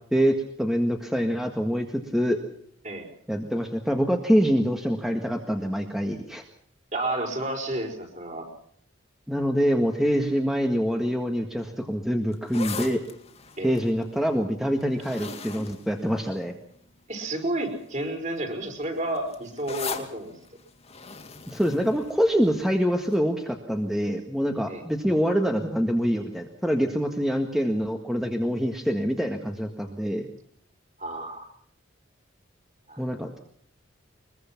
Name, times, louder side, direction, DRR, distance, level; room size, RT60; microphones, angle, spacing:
voice 1, 0.1-2.4 3.3-6.4 9.3-13.0 13.6-16.5 21.5-30.3 33.0-33.4, equal, ahead, 3 dB, 1.7 m, -25 dB
voice 2, 6.9-8.5 13.6-13.8 17.1-20.4 24.7-24.8 31.0-31.5 32.9-33.0, right 1 dB, 35° right, 4 dB, 5.1 m, -31 dB
sound 1, 12.3-16.8 17.5-17.8 18.1-22.7 23.1-23.2, left 5 dB, 30° left, 2.4 m, -39 dB
22.5 x 22.0 x 6.0 m, 0.65 s
head